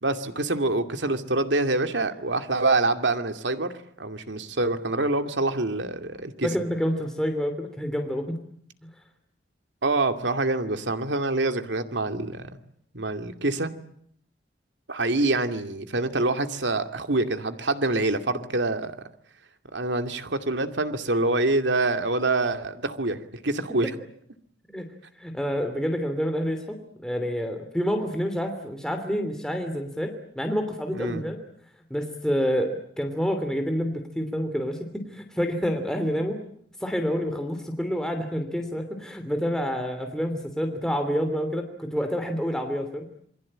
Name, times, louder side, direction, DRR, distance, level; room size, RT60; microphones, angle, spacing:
voice 1, 0.0-6.5 9.8-12.5 12.9-13.7 14.9-18.9 19.7-23.9 30.9-31.2, right 2 dB, 80° right, 7 dB, 2.5 m, -26 dB
voice 2, 6.4-8.4 24.6-24.9 25.2-31.4 31.9-36.4 36.8-43.1, equal, 5° left, 5 dB, 2.9 m, -28 dB
28.0 x 23.5 x 8.8 m, 0.67 s
head